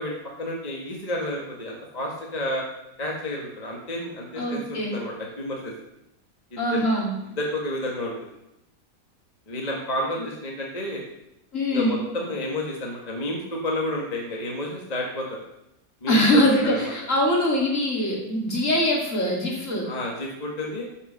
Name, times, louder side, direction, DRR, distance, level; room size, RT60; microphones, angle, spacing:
voice 1, 0.0-2.6 3.0-5.7 6.5-6.8 7.4-8.3 9.5-11.0 11.7-15.4 16.0-16.9 19.8-20.9, left 1 dB, 25° left, -1 dB, 1.6 m, -30 dB
voice 2, 4.4-5.0 6.6-7.1 11.5-12.0 16.1-19.9, left 1 dB, 50° left, -1 dB, 2.9 m, -23 dB
12.5 x 5.8 x 6.6 m, 0.87 s
omnidirectional pair, 1.7 m